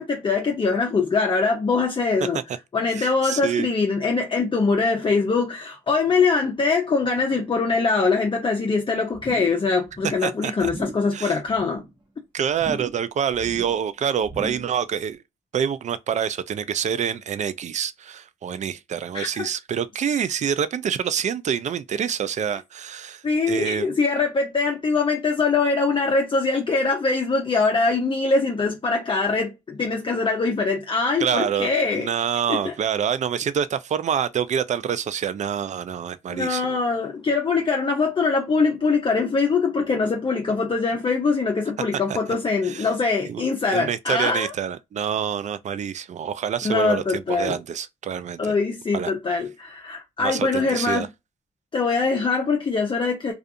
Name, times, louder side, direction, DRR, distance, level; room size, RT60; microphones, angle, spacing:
voice 1, 0.0-2.4 2.7-11.8 19.1-19.5 23.2-32.1 32.5-32.7 36.3-44.5 46.6-47.6 48.4-51.1 51.7-53.3, left 4 dB, 35° left, 0.6 m, -23 dB
voice 2, 2.9-3.7 10.2-10.7 11.1-11.4 12.3-15.2 15.5-23.9 31.2-36.8 42.1-42.2 42.6-42.9 43.3-43.4 43.7-48.5 48.9-49.1 50.2-51.1, right 8 dB, 50° right, 0.4 m, -26 dB
sound 1, 9.1-9.6 9.9-10.3 10.6-11.1 11.5-11.9 12.5-13.1 13.3-13.8 14.2-14.8 15.1-15.2, right 2 dB, 30° right, 1.2 m, -37 dB
2.4 x 2.4 x 2.6 m
cardioid pair, 70°, 15 cm